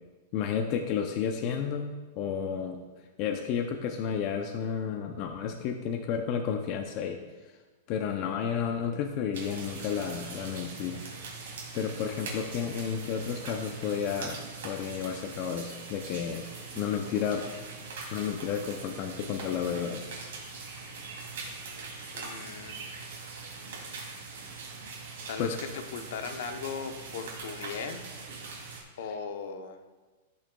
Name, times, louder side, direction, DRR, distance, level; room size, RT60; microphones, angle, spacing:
voice 1, 0.3-2.8 3.2-7.2 7.9-11.0 11.4-14.4 14.6-16.5 16.8-17.4 18.1-20.0 25.4-25.6, left 7 dB, 35° left, 4 dB, 0.5 m, -32 dB
sound 1, 9.3-28.8, right 4 dB, 70° right, 2.8 m, -42 dB
voice 2, 22.1-23.2 25.3-28.0 29.0-29.8, left 6 dB, 60° left, 7 dB, 0.8 m, -38 dB
16.0 x 6.4 x 2.3 m, 1.3 s
supercardioid pair, 170°, 0 cm